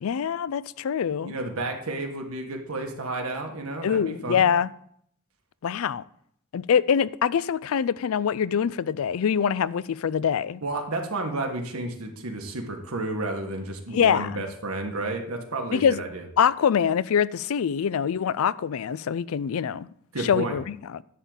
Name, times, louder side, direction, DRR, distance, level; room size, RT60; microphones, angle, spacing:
voice 1, 0.0-1.3 3.8-4.7 5.6-6.0 6.5-10.6 13.9-14.4 15.7-16.0 16.4-19.9 20.2-21.0, left 7 dB, 75° left, 0.4 m, -24 dB
voice 2, 1.2-4.4 10.6-16.2 20.1-20.6, right 2 dB, 85° right, 1.6 m, -31 dB
11.0 x 3.8 x 7.2 m
head